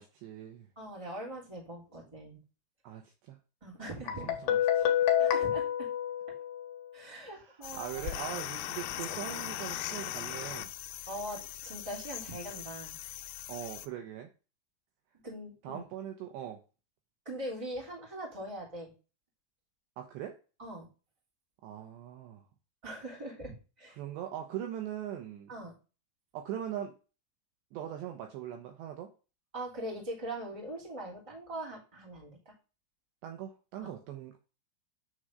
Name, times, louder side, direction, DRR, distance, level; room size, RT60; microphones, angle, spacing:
voice 1, 0.0-0.7 2.8-3.4 4.1-5.1 7.3-10.7 13.5-14.3 15.6-16.6 20.0-20.4 21.6-22.4 24.0-25.5 26.3-26.9 27.7-29.1 33.2-34.4, right 10 dB, 75° right, 4 dB, 2.7 m, -41 dB
voice 2, 0.7-2.4 3.6-4.3 5.2-5.9 6.9-8.0 9.1-9.2 11.1-13.0 15.2-15.8 17.2-18.9 20.6-20.9 22.8-24.0 25.5-25.7 29.5-32.5 33.8-33.9, right 1 dB, 10° right, -2 dB, 2.3 m, -41 dB
Guitar, 4.1-6.9, left 10 dB, 65° left, 3.4 m, -28 dB
sound 1, 7.6-13.9, left 13 dB, 85° left, 3.4 m, -40 dB
10.0 x 4.4 x 6.4 m, 0.33 s
omnidirectional pair, 5.8 m